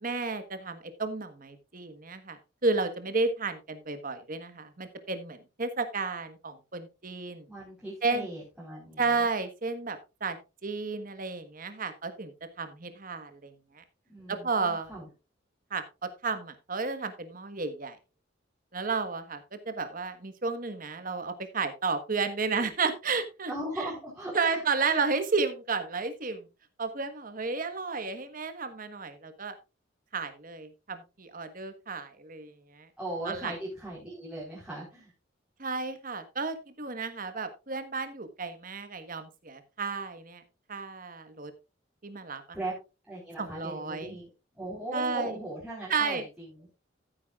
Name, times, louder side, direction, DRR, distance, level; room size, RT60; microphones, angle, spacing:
voice 1, 0.0-7.5 8.0-8.3 9.0-10.4 10.6-12.3 12.6-13.8 14.3-14.9 15.7-18.0 18.7-23.5 24.3-26.5 26.8-29.6 30.1-32.9 33.3-33.5 35.6-40.4 40.7-41.5 42.0-42.4 43.4-44.2 44.9-45.3 45.9-46.2, right 4 dB, 45° right, 9 dB, 1.3 m, -32 dB
voice 2, 7.5-9.3 14.1-15.1 23.5-25.0 33.0-35.1 42.5-42.7 43.1-44.3 44.5-46.8, right 1 dB, 5° right, -8 dB, 4.1 m, -39 dB
14.5 x 8.9 x 2.4 m, 0.28 s
head